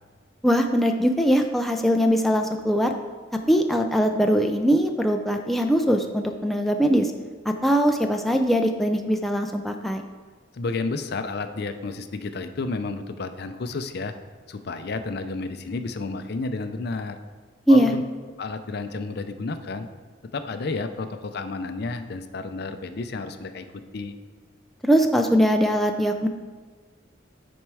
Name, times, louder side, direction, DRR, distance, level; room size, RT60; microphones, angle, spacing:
voice 1, 0.4-2.9 3.5-7.1 7.6-10.0 17.7-17.9 24.8-26.3, equal, ahead, 3 dB, 0.4 m, -21 dB
voice 2, 10.5-14.1 14.5-17.2 17.7-18.0 18.4-19.9 20.3-23.7 23.9-24.1, left 3 dB, 55° left, 9 dB, 0.5 m, -31 dB
9.3 x 4.3 x 4.7 m, 1.5 s
head